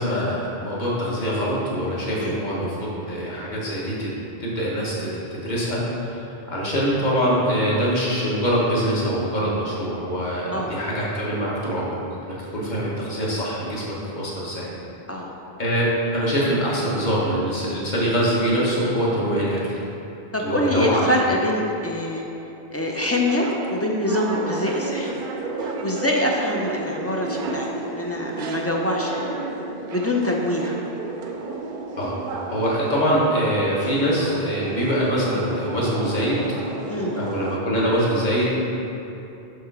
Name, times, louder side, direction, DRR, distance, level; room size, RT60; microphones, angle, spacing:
voice 1, 0.0-4.1 4.4-12.0 12.3-14.7 15.6-19.8 20.4-21.1 32.0-32.2 32.5-36.4 37.1-38.5, equal, 45° left, -6 dB, 1.6 m, -24 dB
voice 2, 20.3-22.2 22.7-25.1 25.6-29.4 29.9-30.8 36.9-37.2, left 1 dB, 15° left, -1 dB, 0.5 m, -24 dB
sound 1, 23.0-37.6, right 3 dB, 60° right, 0.8 m, -32 dB
7.5 x 3.8 x 6.0 m, 2.9 s
omnidirectional pair, 1.1 m